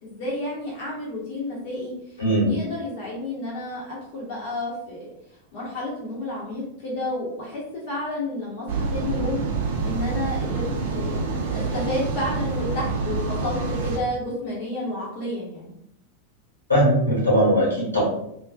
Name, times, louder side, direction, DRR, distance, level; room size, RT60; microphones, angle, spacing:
voice 1, 0.0-2.2 2.5-5.1 5.5-9.4 9.8-15.7, left 1 dB, 45° left, -6 dB, 0.8 m, -31 dB
voice 2, 2.2-2.6 16.7-18.0, equal, 80° left, -5 dB, 1.2 m, -19 dB
sound 1, 8.7-14.0, right 4 dB, 55° right, 0.4 m, -27 dB
2.5 x 2.2 x 2.3 m, 0.76 s
figure-of-eight pair, 90°, 0 cm